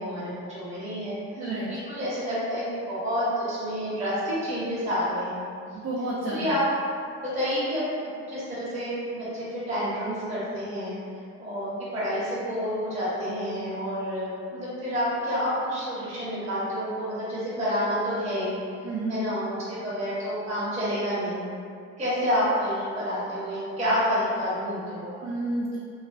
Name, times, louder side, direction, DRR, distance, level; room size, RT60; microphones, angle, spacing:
voice 1, 0.0-1.2 1.7-5.4 6.3-6.6 7.2-7.8 8.3-11.0 11.4-18.6 19.1-21.4 22.0-25.2, equal, 20° right, -11 dB, 0.8 m, -29 dB
voice 2, 1.4-1.7 5.7-6.5 18.8-19.2 25.2-25.8, right 2 dB, 60° right, -8 dB, 0.6 m, -30 dB
2.3 x 2.3 x 2.3 m, 2.4 s
cardioid pair, 90°, 30 cm